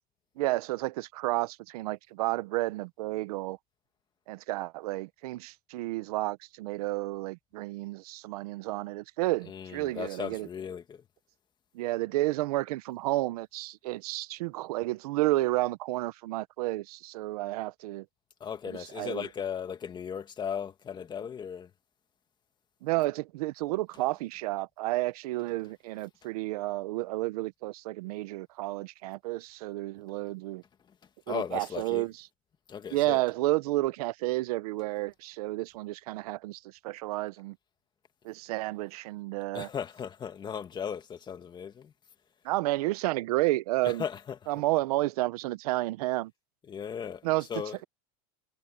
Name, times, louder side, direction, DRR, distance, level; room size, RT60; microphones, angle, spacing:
voice 1, 0.4-3.6 4.3-10.5 11.7-18.0 18.6-19.3 22.8-30.6 31.3-32.1 32.9-37.5 38.2-39.7 42.4-44.0 44.5-46.3 47.2-47.5, right 18 dB, 80° right, 0.9 m, -31 dB
voice 2, 9.5-11.0 18.4-21.7 31.3-32.0 32.7-33.2 39.5-41.9 43.8-44.4 46.7-47.8, left 7 dB, 25° left, 2.1 m, -37 dB
supercardioid pair, 140°, 19 cm